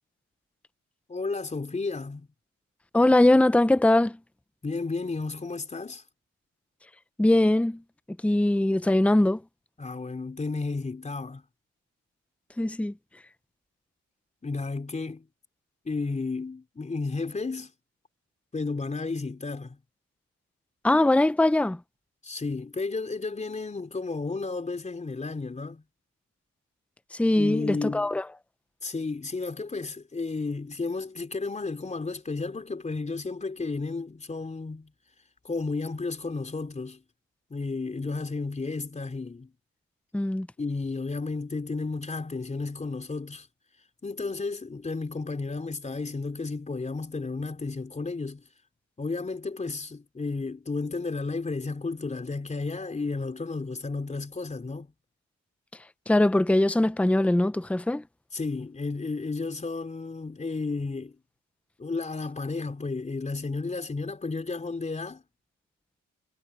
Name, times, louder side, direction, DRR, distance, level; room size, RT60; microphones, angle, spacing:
voice 1, 1.1-2.3 4.6-6.0 9.8-11.4 14.4-15.3 15.8-17.7 18.5-19.8 22.2-25.8 27.3-28.1 28.8-34.9 35.4-37.0 37.5-39.5 40.6-43.5 44.0-48.4 49.0-54.9 58.3-61.2 61.8-65.2, left 3 dB, 25° left, 3.9 m, -32 dB
voice 2, 2.9-4.2 7.2-7.8 8.2-9.4 12.6-12.9 20.8-21.8 27.1-28.2 40.1-40.5 56.1-58.0, left 1 dB, 5° left, 0.9 m, -21 dB
cardioid pair, 90°, 30 cm